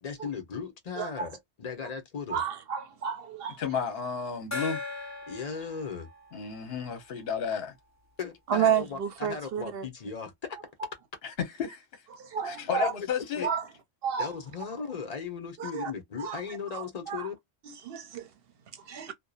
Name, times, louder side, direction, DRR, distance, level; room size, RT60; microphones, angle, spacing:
voice 1, 0.0-2.4 5.3-6.1 8.2-10.6 12.7-13.1 13.4-13.5 14.2-17.4, left 6 dB, 40° left, 0.8 m, -37 dB
voice 2, 1.0-1.3 2.3-3.6 8.5-9.8 12.1-12.9 13.4-13.6 14.0-14.3 15.6-15.9 16.2-16.4 16.7-17.3 17.7-18.3 18.9-19.1, right 8 dB, 65° right, 0.8 m, -31 dB
voice 3, 3.6-4.8 6.3-7.7 11.2-12.0 12.4-13.5, left 7 dB, 65° left, 1.0 m, -32 dB
Gong, 4.5-7.8, left 3 dB, 25° left, 0.4 m, -40 dB
2.6 x 2.2 x 2.3 m
omnidirectional pair, 1.2 m